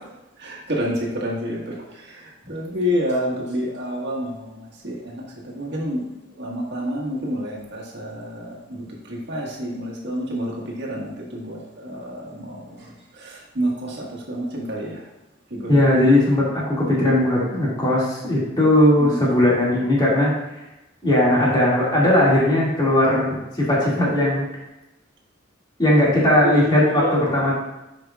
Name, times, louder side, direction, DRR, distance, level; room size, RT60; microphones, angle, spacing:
voice 1, 0.4-1.7 2.5-4.5 4.8-6.1 6.4-12.6 13.2-15.0 15.5-15.7 17.1-17.4 19.0-19.4 21.3-21.5 26.6-27.1, equal, 60° right, -3 dB, 1.6 m, -28 dB
voice 2, 15.7-20.3 21.0-24.5 25.8-27.5, left 1 dB, 25° left, -7 dB, 2.2 m, -18 dB
9.6 x 5.3 x 2.4 m, 0.97 s
head